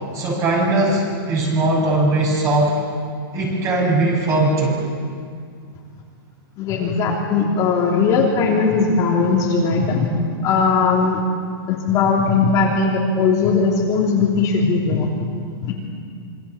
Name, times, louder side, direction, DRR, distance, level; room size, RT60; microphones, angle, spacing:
voice 1, 0.1-2.8 3.3-4.8, right 2 dB, 25° right, 0 dB, 6.6 m, -19 dB
voice 2, 6.6-10.1 10.4-11.2 11.7-15.1 15.6-15.7, left 4 dB, 25° left, -2 dB, 3.3 m, -18 dB
27.0 x 24.5 x 7.3 m, 2.2 s
supercardioid pair, 160°, 13 cm